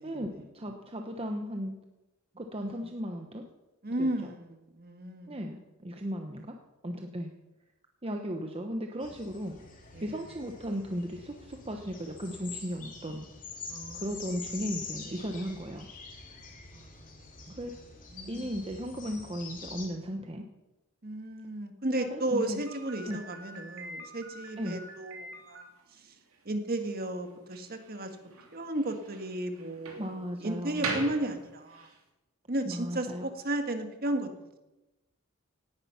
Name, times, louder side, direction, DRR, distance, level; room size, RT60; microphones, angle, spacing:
voice 1, 0.0-1.7 2.3-3.5 4.0-4.1 5.3-6.5 6.8-7.3 8.0-9.6 10.0-13.3 13.9-15.9 17.5-17.7 18.3-20.4 21.9-22.6 23.0-23.2 24.6-24.8 30.0-31.0 32.6-33.2, equal, 25° right, 4 dB, 1.0 m, -36 dB
voice 2, 3.8-5.4 9.9-10.1 13.7-14.2 15.1-15.3 16.7-17.6 18.1-18.7 21.0-26.1 26.4-28.1 28.5-30.0 30.4-31.9 32.5-34.6, right 1 dB, 45° right, 7 dB, 1.7 m, -34 dB
sound 1, 9.0-19.9, left 4 dB, 40° left, 2.7 m, -45 dB
Slam, 22.6-32.0, right 3 dB, 85° right, 2.9 m, -43 dB
18.0 x 10.5 x 5.7 m, 1.0 s
head